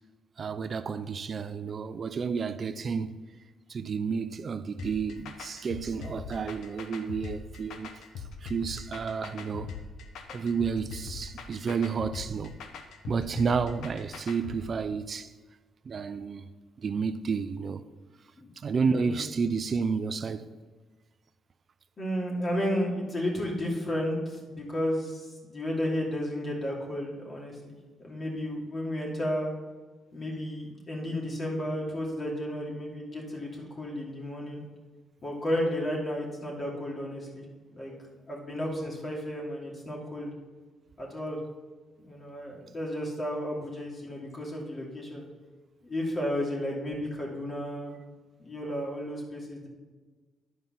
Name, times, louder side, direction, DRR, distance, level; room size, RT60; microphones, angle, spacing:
voice 1, 0.4-3.2 3.7-7.9 8.4-9.7 10.3-12.5 13.1-15.3 15.9-16.5 16.8-17.9 18.6-20.5, right 5 dB, 45° right, 0.4 m, -31 dB
sound 1, 4.8-14.6, left 5 dB, 80° left, 1.0 m, -41 dB
voice 2, 18.8-19.2 22.0-29.5 30.1-34.6 35.2-37.4 37.7-37.9 38.3-40.3 41.0-41.4 42.0-45.2 45.8-47.9 48.4-49.7, equal, 35° left, 2.8 m, -33 dB
11.0 x 5.4 x 5.9 m
cardioid pair, 90°, 0 cm